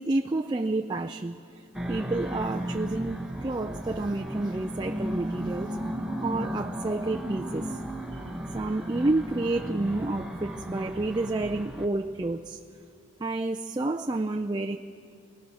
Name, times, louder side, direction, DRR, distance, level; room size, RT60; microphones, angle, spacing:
voice 1, 0.0-1.4 1.9-5.8 6.2-7.8 8.5-12.6 13.2-14.8, right 2 dB, 20° right, 4 dB, 0.4 m, -29 dB
sound 1, 1.7-11.9, equal, 5° right, 1.1 m, -35 dB
23.5 x 19.0 x 6.3 m, 2.4 s
head